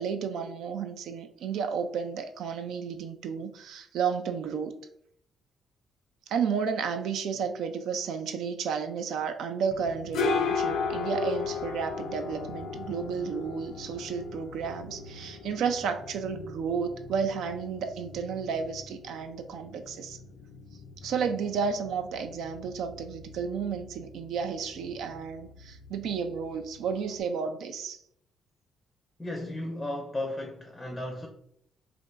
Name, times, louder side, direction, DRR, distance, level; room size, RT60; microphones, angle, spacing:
voice 1, 0.0-4.7 6.3-20.2 21.0-28.0, right 6 dB, 80° right, 0.3 m, -32 dB
sound 1, 9.7-27.2, left 5 dB, 80° left, 0.4 m, -37 dB
voice 2, 29.2-31.3, left 1 dB, 20° left, 0.5 m, -35 dB
2.5 x 2.3 x 3.7 m
cardioid pair, 90°, 0 cm